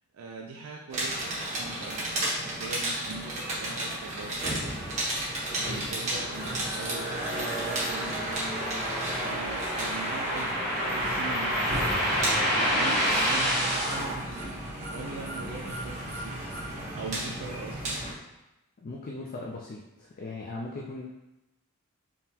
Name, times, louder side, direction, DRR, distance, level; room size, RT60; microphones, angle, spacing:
voice 1, 0.1-4.6 5.4-8.2 9.2-11.7 12.4-14.4 14.9-16.5 16.9-18.0, right 3 dB, 70° right, -1 dB, 0.4 m, -41 dB
sound 1, 0.9-18.1, right 1 dB, 35° right, 1.1 m, -32 dB
sound 2, 6.1-14.0, equal, ahead, 0.9 m, -30 dB
voice 2, 18.8-21.1, left 2 dB, 40° left, -2 dB, 0.4 m, -38 dB
3.7 x 2.9 x 2.8 m, 0.94 s
head